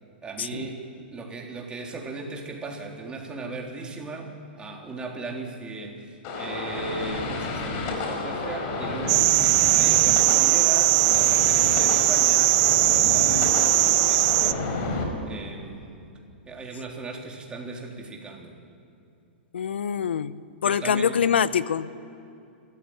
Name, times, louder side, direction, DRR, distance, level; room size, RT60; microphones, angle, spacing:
voice 1, 0.2-9.3 9.7-14.6 15.2-16.0 16.5-18.6 20.6-21.2, right 3 dB, 15° right, 0 dB, 3.8 m, -37 dB
sound 1, 6.2-15.0, left 3 dB, 45° left, 5.0 m, -30 dB
sound 2, 9.1-14.5, right 21 dB, 45° right, 0.7 m, -20 dB
voice 2, 19.5-21.9, left 7 dB, 85° left, 16 dB, 0.8 m, -25 dB
26.0 x 14.5 x 9.1 m, 2.6 s
hypercardioid pair, 120°, 6 cm